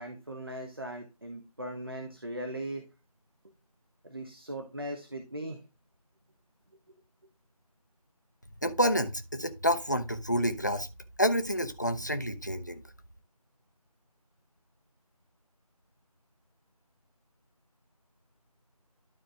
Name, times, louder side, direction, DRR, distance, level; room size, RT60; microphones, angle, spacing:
voice 1, 0.0-2.9 4.0-5.6, right 1 dB, 35° right, 1.1 m, -39 dB
voice 2, 8.6-10.9 11.2-12.8, equal, 30° left, 0.7 m, -28 dB
12.5 x 4.2 x 3.5 m
figure-of-eight pair, 175°, 20 cm